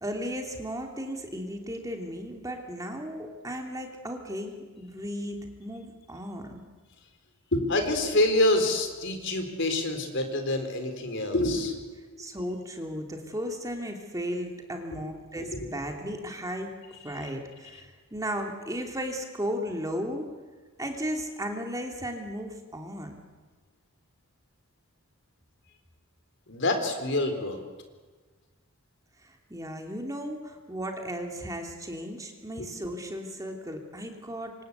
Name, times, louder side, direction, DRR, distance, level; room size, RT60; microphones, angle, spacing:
voice 1, 0.0-6.6 12.2-16.7 17.0-20.3 20.8-23.2 29.2-34.5, equal, 15° right, 3 dB, 2.9 m, -35 dB
voice 2, 7.5-12.4 14.9-15.0 15.5-15.7 26.5-27.6 32.6-32.7, left 1 dB, 55° left, 6 dB, 4.1 m, -27 dB
27.5 x 26.0 x 8.3 m, 1.3 s
head